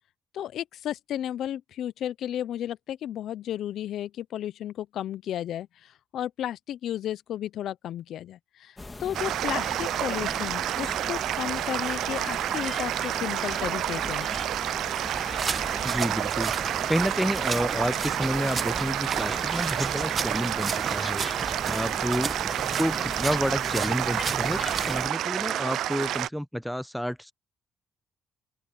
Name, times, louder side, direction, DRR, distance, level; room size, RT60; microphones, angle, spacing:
voice 1, 0.3-14.3, left 11 dB, 75° left, 0.5 m, -33 dB
sound 1, 8.8-25.1, left 2 dB, 20° left, 2.0 m, -39 dB
sound 2, 9.1-26.3, right 12 dB, 75° right, 0.4 m, -29 dB
sound 3, 15.4-25.0, right 4 dB, 35° right, 1.0 m, -35 dB
voice 2, 15.8-16.5 16.9-21.2 21.7-22.3 22.8-27.3, equal, ahead, 0.7 m, -30 dB
open air
cardioid pair, 90°, 0 cm